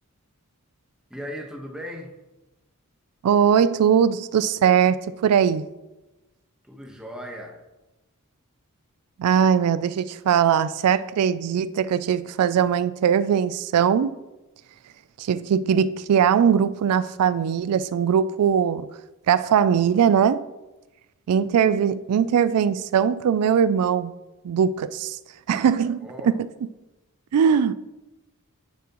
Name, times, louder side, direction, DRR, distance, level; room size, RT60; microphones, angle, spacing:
voice 1, 1.1-2.1 6.6-7.6 26.0-26.5, equal, 5° right, 1.2 m, -37 dB
voice 2, 3.2-5.7 9.2-14.2 15.2-18.9 19.3-20.5 21.3-24.2 24.4-25.2 25.5-26.3 27.3-27.7, right 8 dB, 85° right, 0.3 m, -20 dB
9.5 x 7.4 x 3.0 m
head